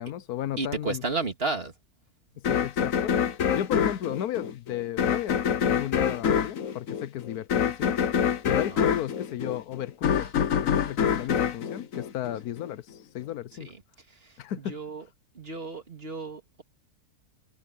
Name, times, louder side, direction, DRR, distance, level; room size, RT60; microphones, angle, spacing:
voice 1, 0.0-1.0 2.4-3.2 3.5-8.0 8.5-10.3 10.6-13.7 14.4-14.8, left 11 dB, 85° left, 1.3 m, -34 dB
voice 2, 0.6-1.7 8.5-8.6 14.7-15.0 15.4-16.6, right 3 dB, 40° right, 2.4 m, -32 dB
sound 1, 2.4-12.7, left 8 dB, 65° left, 1.4 m, -26 dB
omnidirectional pair, 1.6 m